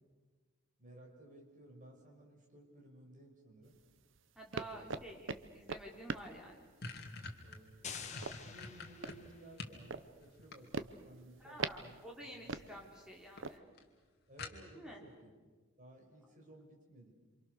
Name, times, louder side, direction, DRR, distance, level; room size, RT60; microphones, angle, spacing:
voice 1, 0.8-3.8 4.5-5.0 7.4-7.9 8.3-12.0 12.2-12.6 14.3-15.3 15.8-17.1, right 1 dB, 40° right, 0 dB, 5.6 m, -57 dB
sound 1, 3.7-13.6, right 4 dB, 60° right, 0.9 m, -45 dB
voice 2, 4.4-6.6 11.4-13.7 14.7-15.0, right 1 dB, 5° right, -1 dB, 4.1 m, -50 dB
sound 2, 5.9-6.0 6.3-9.8 10.2-11.1 12.2-12.6 12.9-13.0 13.4-13.5 13.8-13.9 14.4-14.9, left 3 dB, 50° left, 2.6 m, -47 dB
sound 3, 7.8-9.7, left 6 dB, 35° left, 1.8 m, -48 dB
28.0 x 26.5 x 6.8 m, 1.4 s
head